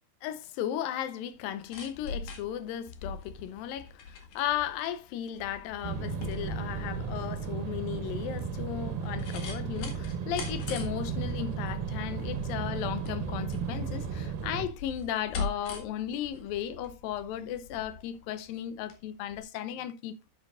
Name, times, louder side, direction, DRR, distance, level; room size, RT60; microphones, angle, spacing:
voice 1, 0.2-20.3, left 10 dB, 85° left, 2.6 m, -35 dB
sound 1, 1.4-19.0 19.3-19.4, left 4 dB, 65° left, 3.2 m, -42 dB
sound 2, 5.8-14.7, right 6 dB, 90° right, 2.7 m, -34 dB
10.5 x 9.1 x 2.4 m
omnidirectional pair, 4.0 m